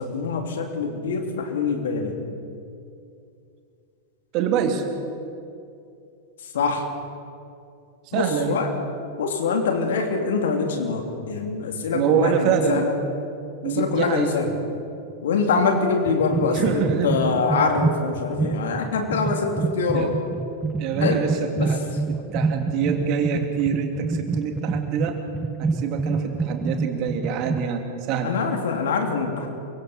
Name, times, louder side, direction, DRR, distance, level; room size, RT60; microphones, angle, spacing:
voice 1, 0.0-2.2 6.4-6.9 8.1-8.7 9.2-12.9 13.6-14.5 15.2-20.2 21.0-21.3 21.5-21.8 28.2-29.5, left 4 dB, 60° left, 3 dB, 2.8 m, -24 dB
voice 2, 4.3-4.8 8.1-8.6 11.9-12.9 13.6-14.4 16.5-17.1 19.9-20.1 20.8-21.8 22.1-25.2 25.6-28.3, right 7 dB, 40° right, 4 dB, 2.7 m, -25 dB
sound 1, 16.1-27.7, right 4 dB, 15° right, 0.7 m, -27 dB
28.0 x 24.0 x 4.4 m, 2.6 s
figure-of-eight pair, 90°, 0 cm